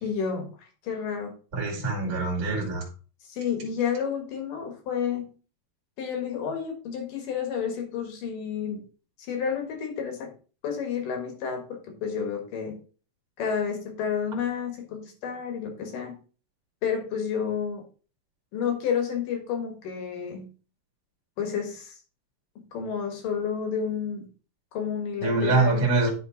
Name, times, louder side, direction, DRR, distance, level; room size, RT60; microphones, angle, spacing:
voice 1, 0.0-0.5 0.8-1.3 3.3-5.3 6.0-8.8 9.3-10.3 10.6-12.8 13.4-16.2 16.8-17.8 18.5-20.5 21.4-21.9 22.7-24.3 24.7-25.8, left 7 dB, 70° left, 3 dB, 3.3 m, -30 dB
voice 2, 1.5-2.9 25.2-26.1, right 3 dB, 30° right, -1 dB, 2.5 m, -24 dB
11.0 x 3.9 x 4.0 m, 0.38 s
omnidirectional pair, 4.0 m